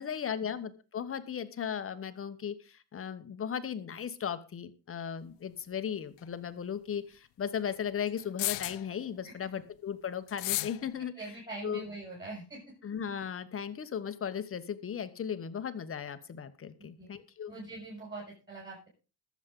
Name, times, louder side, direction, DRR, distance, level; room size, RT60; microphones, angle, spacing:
voice 1, 0.0-11.3 11.6-11.8 12.8-17.6, left 8 dB, 30° left, 11 dB, 1.1 m, -36 dB
sound 1, 6.2-6.3 8.2-8.9 10.3-10.8, left 19 dB, 75° left, 0.5 m, -33 dB
voice 2, 11.2-12.6 16.8-17.1 17.5-18.9, right 2 dB, 25° right, -4 dB, 6.5 m, -43 dB
21.0 x 7.3 x 3.8 m, 0.32 s
cardioid pair, 150°, 42 cm